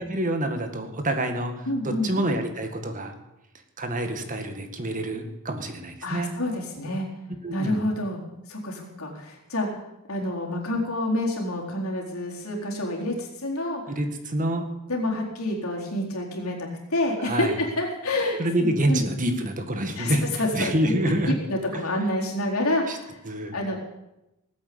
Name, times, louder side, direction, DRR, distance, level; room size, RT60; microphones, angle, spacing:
voice 1, 0.0-3.1 3.8-6.3 7.4-7.8 13.9-14.7 17.2-17.5 18.4-20.3 20.5-21.4 21.7-21.8 22.9-23.0 23.3-23.6, right 1 dB, 35° right, 6 dB, 1.9 m, -27 dB
voice 2, 1.7-2.1 6.0-7.1 7.5-8.2 8.5-9.7 10.1-13.8 14.9-19.0 20.0-23.2 23.5-23.8, left 1 dB, 70° left, -1 dB, 4.2 m, -28 dB
19.5 x 8.4 x 8.7 m, 0.92 s
head